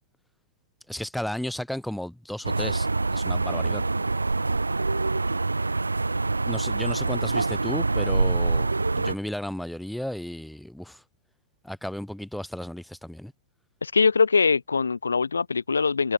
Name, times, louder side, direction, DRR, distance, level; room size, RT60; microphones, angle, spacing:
voice 1, 0.9-3.8 6.5-8.7 9.0-11.0 11.6-13.3, left 1 dB, ahead, 5.9 m, -34 dB
sound 1, 2.4-9.1, right 3 dB, 85° right, 2.2 m, -25 dB
voice 2, 13.8-16.1, left 5 dB, 80° left, 2.5 m, -22 dB
figure-of-eight pair, 100°, 0 cm